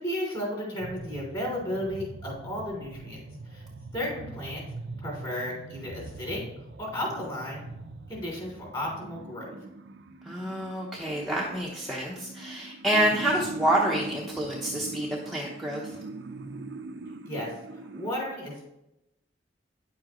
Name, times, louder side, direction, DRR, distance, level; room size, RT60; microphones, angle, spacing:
voice 1, 0.0-3.2 3.5-3.6 3.9-4.6 5.0-6.4 6.8-7.6 8.1-9.5 17.2-17.5 17.9-18.7, left 1 dB, 30° left, -2 dB, 3.1 m, -33 dB
sound 1, 0.8-18.1, right 3 dB, 80° right, 0.6 m, -41 dB
voice 2, 10.3-15.9, right 1 dB, ahead, -4 dB, 0.8 m, -28 dB
9.7 x 7.4 x 3.0 m, 0.89 s
head